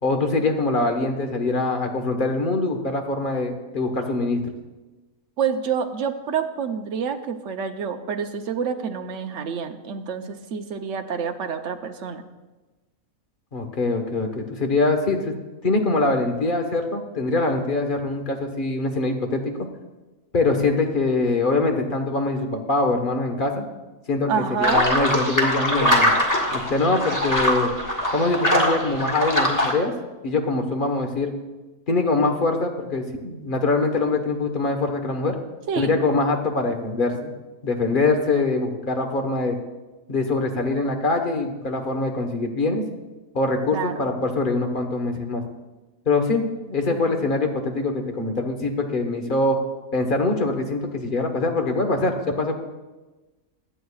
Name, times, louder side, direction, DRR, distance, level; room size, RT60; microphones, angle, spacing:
voice 1, 0.0-4.4 13.5-15.4 15.6-19.5 20.3-23.6 24.1-24.3 24.6-26.1 26.5-27.7 28.1-29.9 30.2-31.3 31.9-35.4 35.8-37.3 37.6-39.6 40.1-42.8 43.3-45.4 46.0-46.4 46.7-49.6 49.9-52.6, left 3 dB, 40° left, 4 dB, 1.3 m, -23 dB
voice 2, 5.4-12.2 24.3-24.8 35.7-36.0 43.7-44.0 46.9-47.2, right 7 dB, 60° right, 5 dB, 1.1 m, -28 dB
sound 1, 24.6-29.7, equal, 15° left, 1.6 m, -22 dB
23.5 x 9.1 x 2.4 m, 1.2 s
omnidirectional pair, 1.5 m